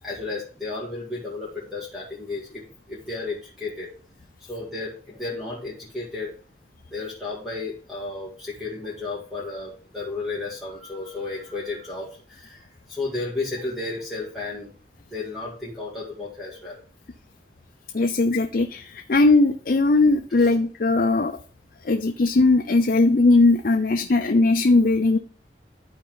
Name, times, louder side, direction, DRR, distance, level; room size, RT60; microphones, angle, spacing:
voice 1, 0.0-3.9 4.4-6.4 6.9-14.7 15.1-16.8 20.4-20.5, left 3 dB, ahead, -6 dB, 2.0 m, -33 dB
voice 2, 17.9-21.4 21.9-25.2, left 3 dB, 50° left, 5 dB, 0.5 m, -19 dB
12.0 x 4.3 x 3.8 m, 0.40 s
head